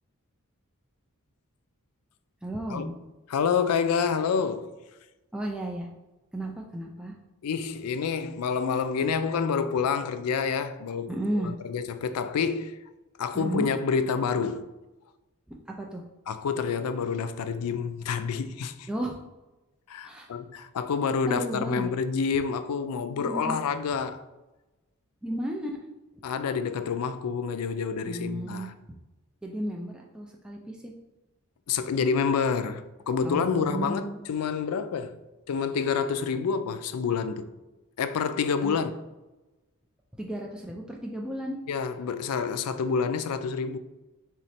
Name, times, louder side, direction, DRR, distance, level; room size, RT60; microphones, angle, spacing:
voice 1, 2.4-3.0 5.3-5.9 6.3-7.2 11.1-11.5 13.3-13.7 15.5-16.0 18.9-19.2 20.0-20.3 21.3-21.9 23.2-23.6 25.2-25.8 28.1-28.7 29.4-30.9 33.2-34.2 38.6-38.8 40.2-41.6, right 1 dB, 5° right, 0.3 m, -33 dB
voice 2, 3.3-4.7 7.4-12.8 13.2-14.7 16.3-18.9 19.9-24.2 26.2-28.7 31.7-35.2 35.5-37.5 38.0-38.9 41.7-43.8, left 6 dB, 85° left, 0.4 m, -28 dB
3.7 x 3.1 x 4.2 m
head